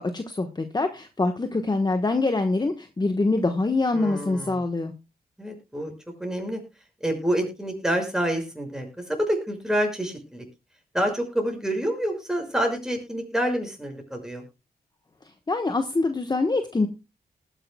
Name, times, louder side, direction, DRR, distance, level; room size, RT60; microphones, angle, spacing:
voice 1, 0.0-4.9 15.5-16.9, left 3 dB, 25° left, 7 dB, 1.2 m, -24 dB
voice 2, 3.9-4.6 5.4-5.9 6.2-6.6 7.0-10.4 10.9-14.4, equal, 5° right, 2 dB, 6.2 m, -27 dB
19.5 x 10.5 x 2.2 m, 0.27 s
wide cardioid pair, 85°, 16 cm